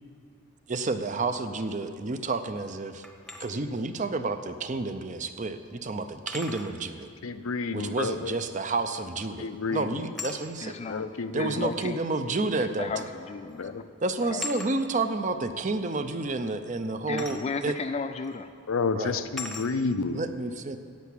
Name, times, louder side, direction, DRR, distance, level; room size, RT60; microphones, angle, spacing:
voice 1, 0.7-3.0 3.4-7.1 7.7-10.7 11.3-12.9 14.0-17.8 18.9-19.2 20.1-20.8, right 3 dB, 35° right, 9 dB, 0.6 m, -30 dB
sound 1, 3.0-3.5 5.0-5.1 6.3-6.7 8.9-9.3 10.2-10.4 11.6-11.7 13.0-13.2 13.5-13.7 14.4-14.7 17.2-17.4 18.2-18.4 19.4-19.7, left 3 dB, ahead, 0.9 m, -38 dB
voice 2, 7.2-8.3 9.4-10.0 10.9-11.8 13.6-13.8 18.7-20.2, left 4 dB, 75° left, 11 dB, 0.6 m, -30 dB
voice 3, 10.6-12.0 12.6-13.9 14.2-14.5 17.0-18.5, left 4 dB, 30° left, 8 dB, 0.3 m, -35 dB
10.5 x 8.3 x 8.4 m, 2.1 s
head